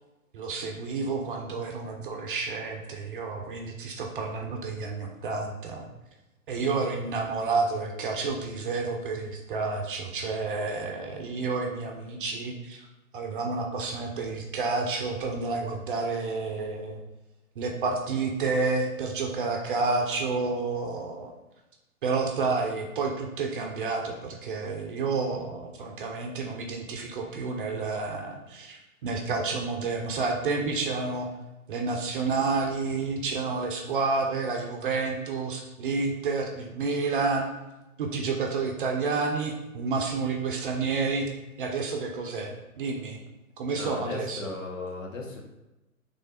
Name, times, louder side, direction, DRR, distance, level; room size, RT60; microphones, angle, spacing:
voice 1, 0.3-5.9 6.5-12.8 13.1-17.0 17.6-21.3 22.0-31.3 31.7-37.5 38.0-41.3 41.6-43.2 43.6-44.5, right 4 dB, 35° right, 2 dB, 0.6 m, -30 dB
voice 2, 43.8-45.5, left 3 dB, 60° left, 1 dB, 1.2 m, -36 dB
3.4 x 3.3 x 4.0 m, 1.0 s
figure-of-eight pair, 125°, 44 cm